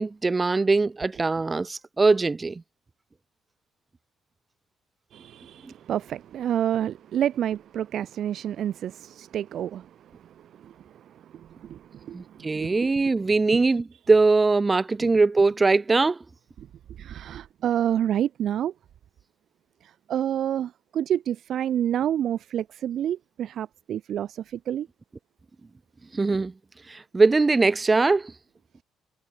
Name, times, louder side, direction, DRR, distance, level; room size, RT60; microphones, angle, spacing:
voice 1, 0.0-2.6 12.1-16.2 26.1-26.5 26.9-28.3, right 3 dB, 25° right, 1.0 m, -21 dB
voice 2, 5.1-13.2 13.5-13.6 15.0-15.1 16.6-16.7 17.0-18.7 19.8-24.9, right 10 dB, 55° right, 3.5 m, -29 dB
hypercardioid pair, 50°, 0 cm